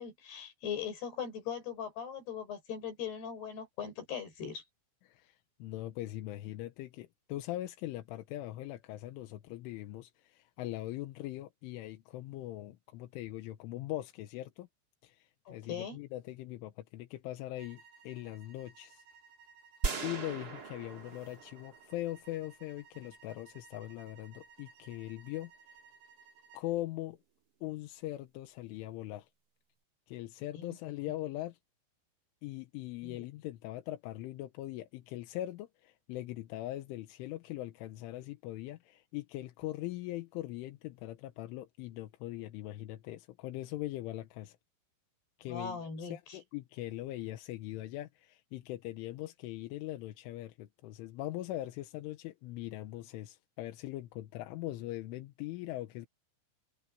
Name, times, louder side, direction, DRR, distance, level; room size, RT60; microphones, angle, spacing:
voice 1, 0.0-4.6 15.5-16.0 30.6-30.8 33.0-33.2 45.4-46.4, left 7 dB, 50° left, 7.3 m, -40 dB
voice 2, 5.0-14.7 15.0-19.0 20.0-25.5 26.5-27.2 27.6-29.3 30.1-31.6 32.4-44.6 45.4-56.1, left 15 dB, 80° left, 3.4 m, -41 dB
sound 1, 17.6-26.7, right 5 dB, 70° right, 8.5 m, -59 dB
sound 2, 19.8-22.2, right 4 dB, 50° right, 1.1 m, -38 dB
omnidirectional pair, 5.9 m